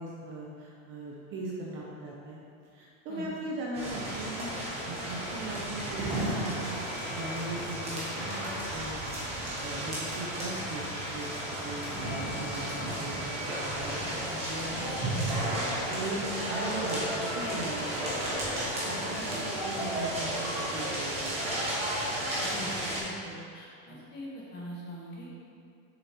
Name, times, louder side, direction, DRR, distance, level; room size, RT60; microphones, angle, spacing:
voice 1, 0.0-2.4 2.7-4.5 4.8-9.0 9.6-18.3 18.8-21.5 23.9-24.0, right 2 dB, 30° right, -4 dB, 0.7 m, -39 dB
sound 1, 3.7-23.0, right 1 dB, 15° right, 1.4 m, -33 dB
voice 2, 22.4-25.3, equal, 25° left, -5 dB, 1.4 m, -43 dB
7.5 x 6.9 x 2.9 m, 2.3 s
supercardioid pair, 175°, 39 cm